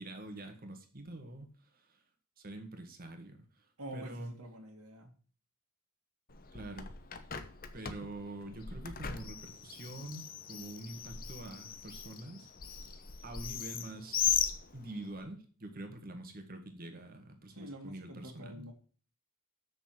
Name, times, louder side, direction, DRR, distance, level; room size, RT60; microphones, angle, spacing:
voice 1, 0.0-1.5 1.7-2.0 2.4-3.7 3.9-4.3 6.5-6.9 7.7-12.5 13.2-14.4 14.7-18.7, right 1 dB, 40° right, 5 dB, 1.8 m, -45 dB
voice 2, 3.8-5.1 17.5-18.7, right 1 dB, 85° right, 1 dB, 2.1 m, -47 dB
Bird, 6.3-15.2, left 8 dB, 40° left, 1.0 m, -38 dB
7.4 x 6.6 x 7.7 m, 0.41 s
head